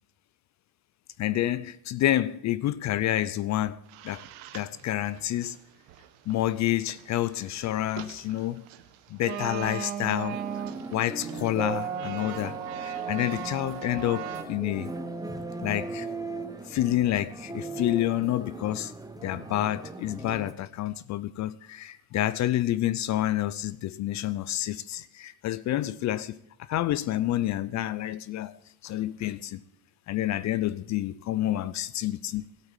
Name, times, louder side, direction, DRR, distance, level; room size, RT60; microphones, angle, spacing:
voice 1, 1.2-3.8 4.0-4.2 4.5-5.6 6.3-8.7 9.1-10.4 10.9-14.9 15.6-16.1 16.7-18.9 19.2-26.4 26.7-28.6 28.8-29.6 30.1-32.5, left 13 dB, 40° left, 0.5 m, -28 dB
sound 1, 3.9-5.6 5.9-14.4, right 9 dB, 70° right, 1.3 m, -37 dB
sound 2, 10.3-20.5, right 3 dB, 10° right, 1.0 m, -38 dB
12.5 x 8.4 x 9.1 m
supercardioid pair, 110°, 44 cm